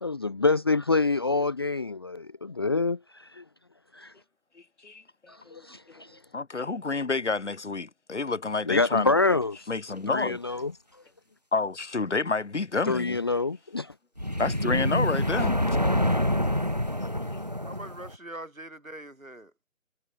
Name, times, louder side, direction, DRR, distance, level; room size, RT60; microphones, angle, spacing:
voice 1, 0.0-3.4 3.9-4.1 5.3-6.2 8.7-9.6 10.1-10.7 12.9-13.9, left 3 dB, 20° left, 0.8 m, -26 dB
voice 2, 4.6-5.0 5.5-5.6 6.3-9.2 9.7-10.4 11.5-13.2 14.4-15.6 17.3-17.4, left 4 dB, 60° left, 4.7 m, -29 dB
sound 1, 14.2-18.2, equal, 35° right, 0.4 m, -26 dB
voice 3, 17.4-19.7, right 1 dB, 90° right, 5.0 m, -43 dB
figure-of-eight pair, 150°, 39 cm